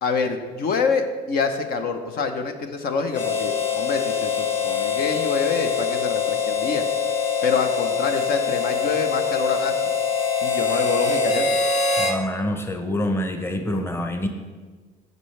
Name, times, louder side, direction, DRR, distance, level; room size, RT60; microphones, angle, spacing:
voice 1, 0.0-6.8 7.4-9.8 10.4-11.6, left 5 dB, 70° left, 7 dB, 1.0 m, -26 dB
Harmonica, 3.1-12.2, left 5 dB, 40° left, 1.8 m, -24 dB
voice 2, 12.0-14.3, left 1 dB, 15° left, 5 dB, 0.9 m, -26 dB
14.5 x 5.3 x 3.3 m, 1.4 s
cardioid pair, 105°, 17 cm